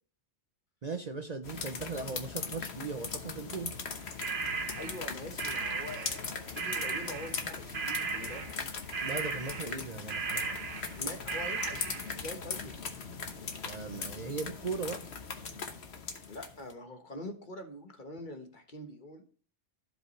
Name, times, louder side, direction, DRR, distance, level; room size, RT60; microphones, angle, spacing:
voice 1, 0.8-3.7 9.0-10.7 13.6-15.0, right 4 dB, 40° right, 0.7 m, -38 dB
sound 1, 1.4-16.7, left 5 dB, 65° left, 1.4 m, -40 dB
sound 2, 4.2-6.3 6.6-12.2, right 5 dB, 65° right, 1.3 m, -36 dB
voice 2, 4.8-8.6 10.9-13.0 16.3-19.2, left 1 dB, 45° left, 1.4 m, -44 dB
15.0 x 5.2 x 3.1 m
omnidirectional pair, 1.2 m